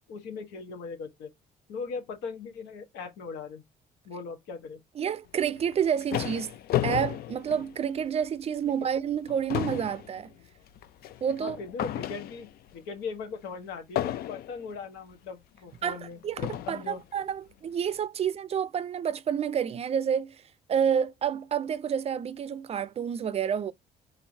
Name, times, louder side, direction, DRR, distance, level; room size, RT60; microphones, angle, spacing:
voice 1, 0.1-1.3 1.7-3.6 4.0-4.8 11.4-16.2 16.6-17.0, left 5 dB, 90° left, 1.3 m, -39 dB
voice 2, 5.0-10.3 11.2-11.6 15.8-20.4 20.7-23.7, right 8 dB, 35° right, 0.4 m, -29 dB
sound 1, 5.6-8.2 8.7-8.9 9.2-12.7 14.0-14.7 15.6-15.7 16.4-16.9, left 13 dB, 65° left, 0.5 m, -33 dB
4.4 x 3.8 x 2.7 m
cardioid pair, 110°, 17 cm